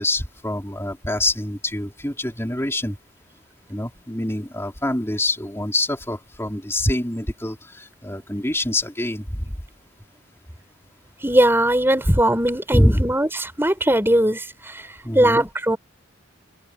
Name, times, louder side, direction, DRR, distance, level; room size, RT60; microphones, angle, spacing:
voice 1, 0.0-3.0 3.7-9.5 12.7-13.0 15.0-15.4, left 1 dB, 10° left, 4.1 m, -25 dB
voice 2, 11.2-14.8 15.1-15.8, right 1 dB, 10° right, 5.1 m, -19 dB
open air
head